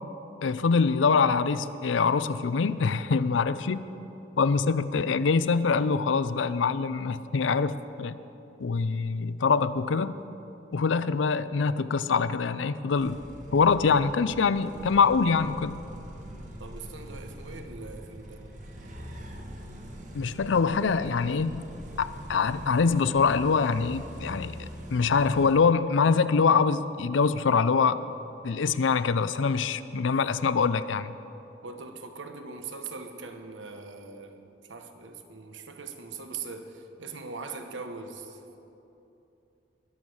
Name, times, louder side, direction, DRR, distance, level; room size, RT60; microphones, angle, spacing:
voice 1, 0.4-3.8 4.4-8.2 8.6-10.2 10.7-13.2 13.5-15.8 20.1-21.6 22.0-24.6 24.9-28.1 28.4-31.1, left 5 dB, 85° left, 15 dB, 0.5 m, -24 dB
sound 1, 13.0-25.5, equal, 40° right, 1.5 m, -43 dB
voice 2, 16.6-18.4 31.6-38.6, right 4 dB, 85° right, 6 dB, 1.1 m, -41 dB
20.5 x 7.1 x 6.3 m, 2.9 s
head